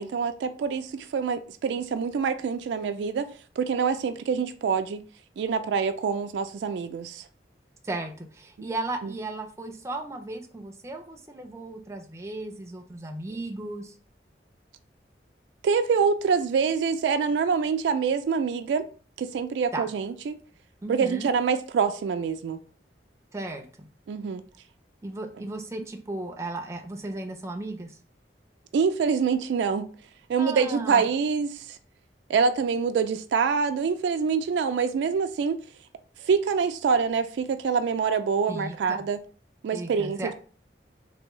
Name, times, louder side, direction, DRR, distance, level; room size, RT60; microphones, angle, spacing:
voice 1, 0.0-3.3 3.6-5.0 5.4-7.3 9.0-9.1 15.6-18.8 19.2-20.4 20.9-22.6 24.1-24.4 28.7-29.9 30.3-31.8 32.3-35.6 36.2-39.2 39.6-40.3, right 5 dB, 85° right, 0.3 m, -25 dB
voice 2, 7.8-13.9 19.7-19.9 20.8-21.3 23.3-23.6 25.0-28.0 30.4-31.0 38.5-39.0 39.7-40.3, right 2 dB, 15° right, 0.4 m, -35 dB
3.4 x 2.7 x 3.0 m
head